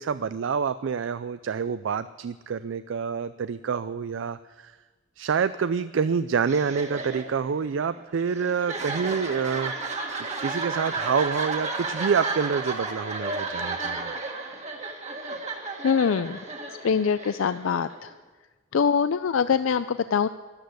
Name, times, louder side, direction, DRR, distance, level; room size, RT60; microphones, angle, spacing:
voice 1, 0.0-4.4 4.6-4.7 5.2-10.0 10.4-14.1, right 6 dB, 70° right, 13 dB, 0.4 m, -27 dB
sound 1, 6.4-18.1, right 3 dB, 35° right, 1.8 m, -33 dB
voice 2, 15.8-16.4 16.8-18.1 18.7-20.3, left 6 dB, 80° left, 12 dB, 0.4 m, -23 dB
13.0 x 12.0 x 7.9 m, 1.3 s
head